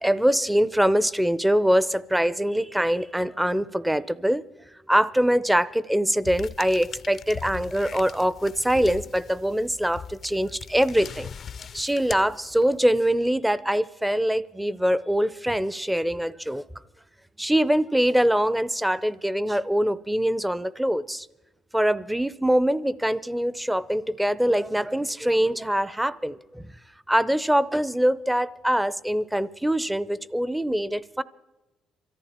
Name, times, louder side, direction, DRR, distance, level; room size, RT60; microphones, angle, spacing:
voice 1, 0.0-4.4 4.9-11.3 11.7-16.6 17.4-21.3 21.7-26.7 27.1-31.2, equal, 5° right, 0.5 m, -23 dB
sound 1, 6.2-12.9, left 7 dB, 50° left, 0.5 m, -40 dB
23.5 x 14.0 x 4.3 m
cardioid pair, 100°, 0 cm